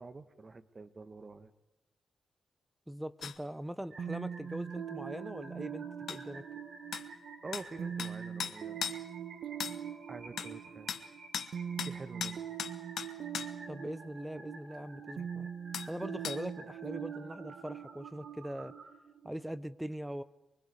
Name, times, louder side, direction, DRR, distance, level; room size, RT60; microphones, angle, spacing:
voice 1, 0.0-1.5 7.4-9.0 10.1-10.9 11.8-12.4, right 3 dB, 30° right, 10 dB, 1.3 m, -46 dB
voice 2, 2.9-6.4 13.7-15.5 15.9-18.7 19.2-20.2, right 1 dB, 5° right, 13 dB, 0.9 m, -41 dB
sound 1, 3.2-3.4 6.1-6.2 6.9-7.1 7.5-7.7 8.0-8.1 8.4-9.0 9.6-9.8 10.4-10.5 10.9-11.0 11.3-11.5 11.8-12.0 12.2-13.5 15.7-15.9 16.2-16.4, left 8 dB, 85° left, 1.1 m, -37 dB
sound 2, 3.9-18.9, right 3 dB, 60° right, 7.9 m, -53 dB
sound 3, 4.0-19.6, right 8 dB, 80° right, 1.1 m, -43 dB
24.5 x 23.5 x 5.0 m, 0.93 s
wide cardioid pair, 120°, 0 cm